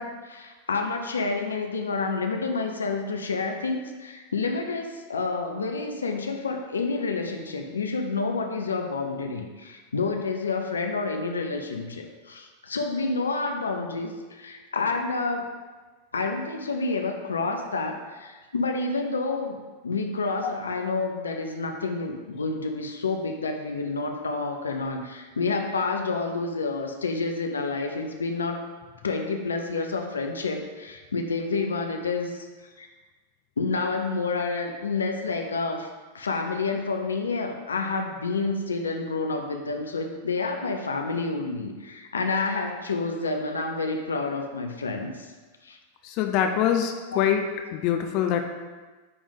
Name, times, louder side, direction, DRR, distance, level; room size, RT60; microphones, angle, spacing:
voice 1, 0.0-15.5 16.1-19.6 19.8-28.6 29.0-32.5 32.8-32.9 33.6-35.9 36.1-45.3 45.6-45.8 47.1-47.3, left 3 dB, 70° left, 3 dB, 0.7 m, -29 dB
voice 2, 46.0-47.5 47.7-48.4, left 9 dB, 40° left, 5 dB, 0.7 m, -24 dB
9.5 x 3.6 x 5.2 m, 1.3 s
figure-of-eight pair, 90°, 0 cm